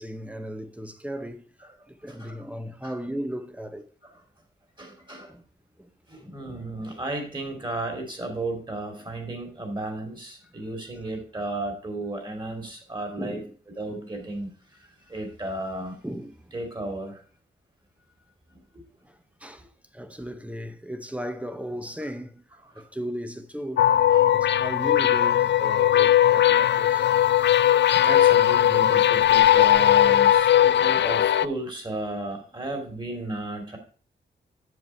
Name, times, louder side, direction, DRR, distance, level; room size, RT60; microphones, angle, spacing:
voice 1, 0.0-1.5 1.9-3.8 5.3-5.4 5.8-6.6 10.4-10.6 13.2-13.6 13.9-14.0 16.0-16.5 19.0-23.9 24.3-27.1, equal, 5° right, 0.8 m, -37 dB
voice 2, 4.8-5.3 6.1-13.4 13.8-16.0 16.5-17.2 18.5-18.8 22.7-22.8 24.1-24.4 27.9-33.8, right 2 dB, 25° right, 2.5 m, -34 dB
sound 1, 23.8-31.5, left 11 dB, 70° left, 0.4 m, -19 dB
8.0 x 7.4 x 4.3 m
wide cardioid pair, 140°, 19 cm